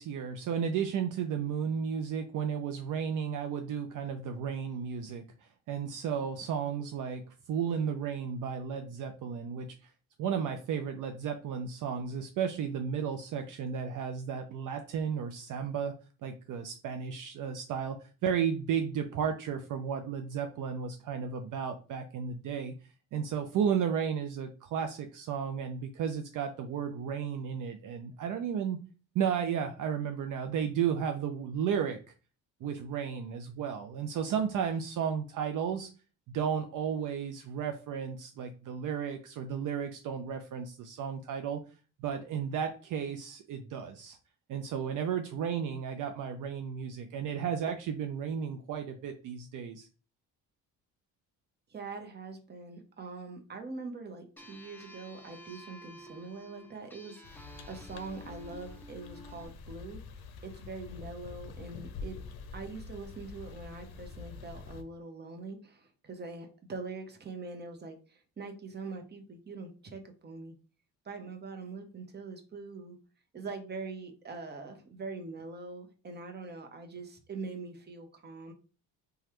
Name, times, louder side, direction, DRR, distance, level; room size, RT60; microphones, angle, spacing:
voice 1, 0.0-7.2 7.5-9.9 10.2-15.9 16.2-18.0 18.2-22.7 23.1-28.8 29.1-32.0 32.6-35.9 36.3-41.6 42.0-44.2 44.5-49.9, right 7 dB, 55° right, 6 dB, 0.5 m, -33 dB
voice 2, 51.7-60.0 60.4-62.2 62.5-70.5 71.0-73.0 73.3-78.5, right 3 dB, 25° right, 5 dB, 0.8 m, -43 dB
sound 1, 54.4-59.5, equal, 5° left, 0.5 m, -51 dB
sound 2, 57.2-64.8, left 4 dB, 75° left, 0.6 m, -46 dB
3.1 x 2.3 x 2.9 m, 0.35 s
supercardioid pair, 80°, 38 cm